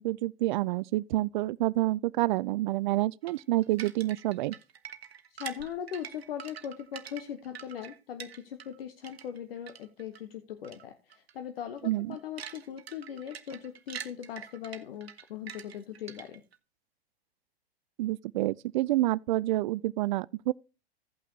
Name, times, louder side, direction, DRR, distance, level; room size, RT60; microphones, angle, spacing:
voice 1, 0.0-4.5 11.8-12.2 18.0-20.5, right 16 dB, 50° right, 0.4 m, -28 dB
sound 1, 3.3-8.8 9.0-10.2 10.6-10.8 11.1-11.3 11.8-16.6, right 8 dB, 80° right, 1.0 m, -45 dB
voice 2, 5.3-16.4, left 9 dB, 70° left, 0.9 m, -40 dB
16.5 x 5.8 x 2.7 m
hypercardioid pair, 110°, 30 cm